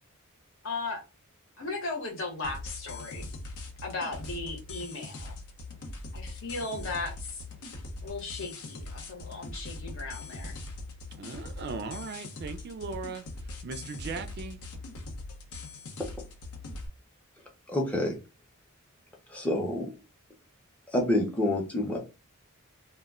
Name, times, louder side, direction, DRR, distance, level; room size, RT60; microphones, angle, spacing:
voice 1, 0.6-1.0 1.6-3.2 3.8-5.3 6.1-7.4 8.0-10.6, left 3 dB, 60° left, 0.9 m, -36 dB
sound 1, 2.4-16.9, left 2 dB, 85° left, 0.6 m, -41 dB
voice 2, 11.2-13.2 13.6-14.6, right 4 dB, 50° right, 0.3 m, -38 dB
voice 3, 17.7-18.2 19.3-19.9 20.9-22.0, left 1 dB, 5° left, 0.5 m, -27 dB
2.1 x 2.1 x 3.4 m
head